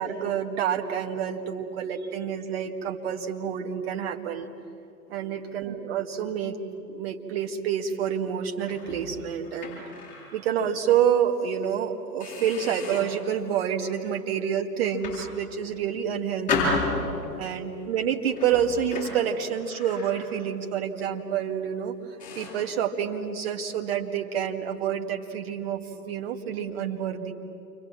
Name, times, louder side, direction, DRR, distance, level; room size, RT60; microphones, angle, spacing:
voice 1, 0.0-4.5 5.1-6.6 6.9-9.8 10.1-16.7 17.4-21.9 22.4-27.3, right 8 dB, 35° right, 4 dB, 2.1 m, -28 dB
sound 1, 8.6-10.4 10.8-11.0 11.6-11.7 12.2-13.2 13.8-14.1 14.8-15.9 16.5-17.5 18.3-20.6 20.9-21.2 21.7-21.8 22.2-22.7, left 3 dB, 15° left, 8.0 m, -33 dB
29.0 x 25.0 x 7.5 m, 2.7 s
figure-of-eight pair, 125°, 49 cm